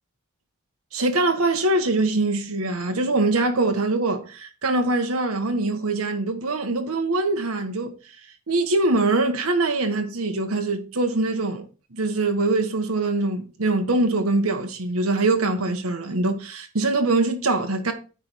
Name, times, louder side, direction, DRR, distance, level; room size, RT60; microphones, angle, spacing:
voice 1, 0.9-8.0 8.5-17.9, right 2 dB, 85° right, 1.3 m, -23 dB
9.5 x 3.5 x 6.1 m
head